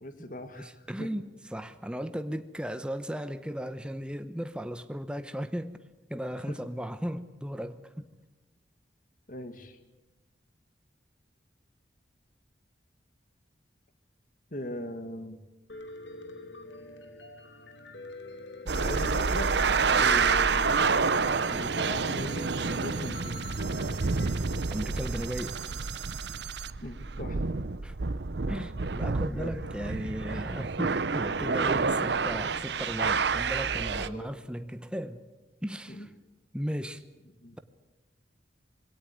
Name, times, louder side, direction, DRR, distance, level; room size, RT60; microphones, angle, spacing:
voice 1, 0.0-1.1 6.3-6.6 9.3-9.8 14.5-15.4 18.8-19.5 19.9-20.8 21.5-23.5 26.8-27.5 28.5-28.7 29.3-29.6 34.0-34.4 35.9-36.1 37.4-37.6, left 1 dB, 45° left, 9 dB, 1.8 m, -40 dB
voice 2, 0.6-5.8 6.1-8.1 24.7-25.6 27.8-28.0 28.5-35.2 35.6-36.1 36.5-37.0, equal, 5° right, 10 dB, 0.8 m, -36 dB
Piano, 15.7-24.4, left 2 dB, 80° left, 2.4 m, -46 dB
sound 1, 18.7-34.1, right 4 dB, 70° right, 0.8 m, -28 dB
21.5 x 17.0 x 9.3 m, 1.1 s
head